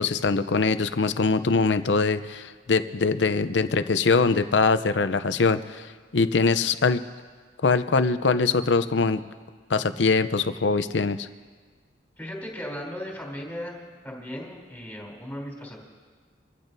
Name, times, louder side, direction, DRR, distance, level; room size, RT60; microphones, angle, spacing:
voice 1, 0.0-5.8 6.1-7.0 7.6-9.2 9.7-11.3, left 4 dB, 75° left, 11 dB, 0.6 m, -22 dB
voice 2, 12.2-13.8 14.0-15.8, equal, 10° left, -2 dB, 3.5 m, -36 dB
26.5 x 15.0 x 2.7 m, 1.5 s
head